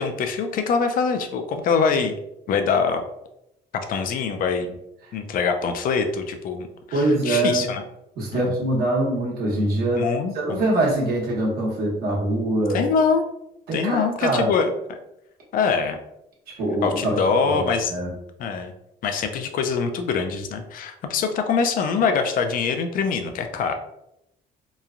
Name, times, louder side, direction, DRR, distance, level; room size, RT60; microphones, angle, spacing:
voice 1, 0.0-2.1 2.5-3.0 3.7-4.8 5.1-7.8 8.3-8.6 10.0-10.6 12.7-13.3 13.7-14.7 15.5-16.0 16.8-17.9 18.4-18.7 19.0-23.7, left 5 dB, 55° left, 6 dB, 0.4 m, -24 dB
voice 2, 6.9-7.7 8.2-10.1 10.3-12.9 13.7-14.5 16.5-17.2 17.4-18.1, right 1 dB, 65° right, -3 dB, 1.1 m, -23 dB
3.0 x 2.2 x 2.4 m, 0.84 s
cardioid pair, 110°, 17 cm